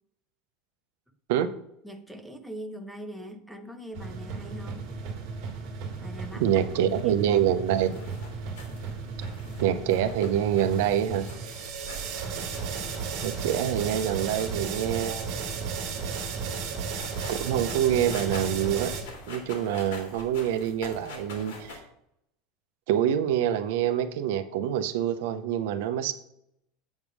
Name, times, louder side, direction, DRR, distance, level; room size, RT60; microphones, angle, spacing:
voice 1, 1.8-4.9 6.0-6.5 7.0-7.2, equal, ahead, 8 dB, 0.4 m, -41 dB
sound 1, 3.9-19.0, right 5 dB, 40° right, 1.7 m, -34 dB
voice 2, 6.4-8.0 9.6-11.3 13.2-15.4 17.3-18.9 19.3-21.8 22.9-26.1, right 10 dB, 65° right, 10 dB, 0.6 m, -26 dB
sound 2, 7.7-21.8, left 3 dB, 85° left, 2.2 m, -46 dB
8.1 x 3.5 x 6.1 m, 0.76 s
supercardioid pair, 175°, 0 cm